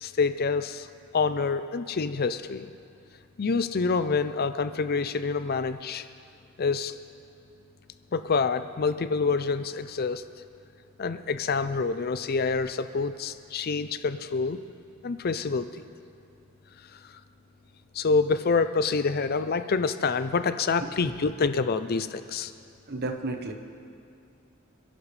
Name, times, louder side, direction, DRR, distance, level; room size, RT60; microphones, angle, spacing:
voice 1, 0.0-0.9 1.1-2.7 3.4-6.1 6.6-6.9 8.1-10.2 11.0-14.6 15.0-15.8 17.9-22.5, left 4 dB, 45° left, 11 dB, 0.5 m, -27 dB
voice 2, 20.8-21.1 22.9-23.5, right 2 dB, 50° right, 5 dB, 1.1 m, -33 dB
27.5 x 11.0 x 3.3 m, 2.6 s
head